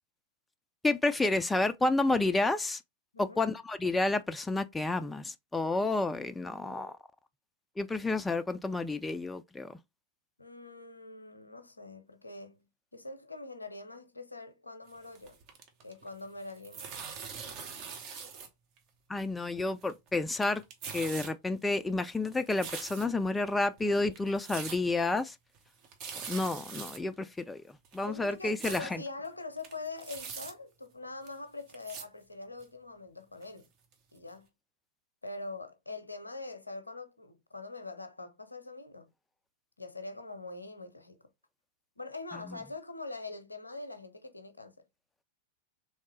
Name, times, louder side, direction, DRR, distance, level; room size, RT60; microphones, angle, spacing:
voice 1, 0.8-2.8 3.2-6.9 7.8-9.7 19.1-20.6 20.9-25.3 26.3-27.6 27.9-29.0, left 2 dB, 10° left, 0.3 m, -30 dB
voice 2, 3.1-3.4 6.4-6.9 10.4-15.4 15.8-16.9 28.0-33.7 34.1-34.5 35.2-39.1 39.8-41.2 42.0-44.7, left 3 dB, 85° left, 0.6 m, -44 dB
sound 1, 14.9-16.1 16.4-18.5 18.8-18.9 19.6-20.1 20.3-21.3 21.7-23.3 23.8-23.9 24.1-24.8 25.1-25.2 25.6-25.7 25.8-27.0 27.4-27.5 27.8-28.8 29.2-29.3 29.6-30.5 31.2-31.3 31.7-32.0 32.6-32.7 33.4-33.5 33.9-34.0 34.3-34.4, right 6 dB, 40° right, 0.9 m, -43 dB
3.5 x 3.1 x 3.1 m
figure-of-eight pair, 90°, 0 cm